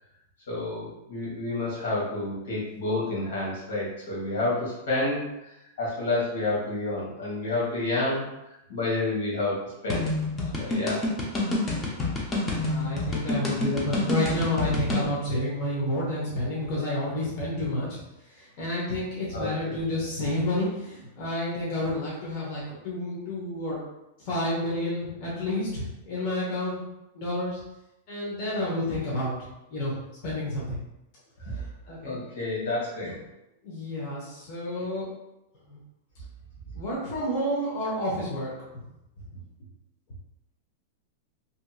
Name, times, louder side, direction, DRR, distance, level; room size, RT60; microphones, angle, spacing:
voice 1, 0.5-5.3 5.8-10.1 10.6-11.0 19.3-19.7 31.5-31.6 32.0-33.2 34.7-34.8, left 2 dB, 80° left, -5 dB, 1.3 m, -29 dB
sound 1, 9.9-15.1, left 2 dB, 20° left, 0.5 m, -28 dB
voice 2, 12.3-18.0 18.3-23.8 24.2-26.8 27.1-27.6 28.1-29.3 29.7-30.0 30.2-30.8 31.5-32.2 33.0-33.1 33.6-35.1 35.6-35.8 36.7-38.5, left 1 dB, 45° left, -6 dB, 0.9 m, -30 dB
2.8 x 2.6 x 2.3 m, 0.90 s
supercardioid pair, 155°, 0 cm